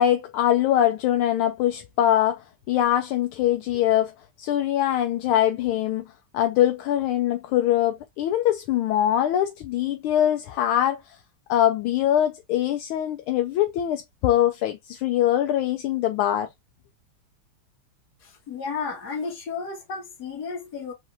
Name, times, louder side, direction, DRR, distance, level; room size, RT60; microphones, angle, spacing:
voice 1, 0.0-4.1 4.4-6.1 6.3-11.2 11.5-16.5, left 11 dB, 80° left, 1.4 m, -23 dB
voice 2, 18.2-20.9, left 5 dB, 50° left, 1.8 m, -33 dB
5.0 x 3.2 x 2.6 m
omnidirectional pair, 2.4 m